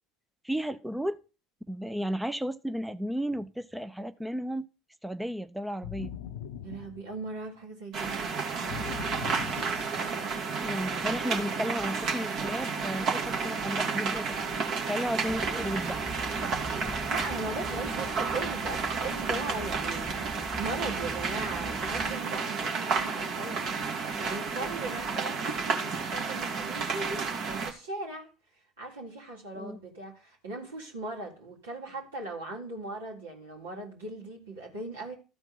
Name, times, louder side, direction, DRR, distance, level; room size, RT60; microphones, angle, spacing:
voice 1, 0.4-1.2 1.7-4.7 5.0-6.1 10.6-16.0 29.5-29.8, equal, 5° right, 0.6 m, -34 dB
sound 1, 5.8-7.6 8.7-10.4, left 9 dB, 75° left, 0.6 m, -41 dB
voice 2, 6.6-8.3 8.5-8.8 16.9-28.3 28.8-35.1, right 2 dB, 85° right, 3.5 m, -39 dB
sound 2, 7.9-27.7, right 5 dB, 55° right, 1.9 m, -31 dB
sound 3, 15.2-22.2, left 1 dB, 15° left, 1.0 m, -43 dB
13.5 x 4.5 x 5.5 m
hypercardioid pair, 70°, 0 cm